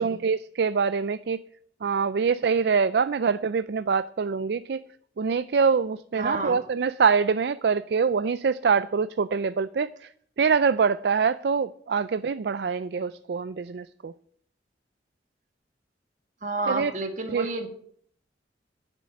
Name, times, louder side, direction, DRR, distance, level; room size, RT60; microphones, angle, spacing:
voice 1, 0.0-1.4 1.8-4.8 5.2-10.1 10.4-14.1 16.7-16.9 17.3-17.5, right 5 dB, 60° right, 14 dB, 0.4 m, -24 dB
voice 2, 6.2-6.6 16.4-17.7, right 2 dB, 40° right, 5 dB, 1.9 m, -30 dB
10.5 x 7.5 x 9.5 m, 0.64 s
head